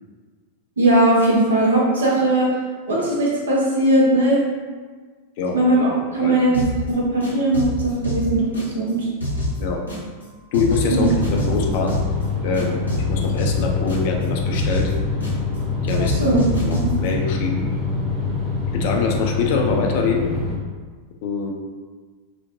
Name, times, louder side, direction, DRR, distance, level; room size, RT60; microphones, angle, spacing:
voice 1, 0.8-2.5 2.9-4.4 5.5-9.1 10.9-11.1 16.0-16.4 16.7-16.9, right 1 dB, 70° right, -5 dB, 0.7 m, -19 dB
voice 2, 6.0-6.4 9.6-9.8 10.5-12.0 12.4-12.8 13.1-14.9 15.8-17.6 18.7-20.3 21.2-21.5, left 4 dB, 50° left, 1 dB, 0.3 m, -24 dB
sound 1, 6.5-6.9 7.2-8.9 9.2-10.2 10.5-12.2 12.5-14.2 14.5-15.6 15.9-17.1, left 1 dB, 80° left, 0.7 m, -27 dB
sound 2, 10.8-20.6, left 4 dB, 15° right, 0.7 m, -25 dB
2.3 x 2.1 x 2.8 m, 1.5 s
figure-of-eight pair, 90°, 0 cm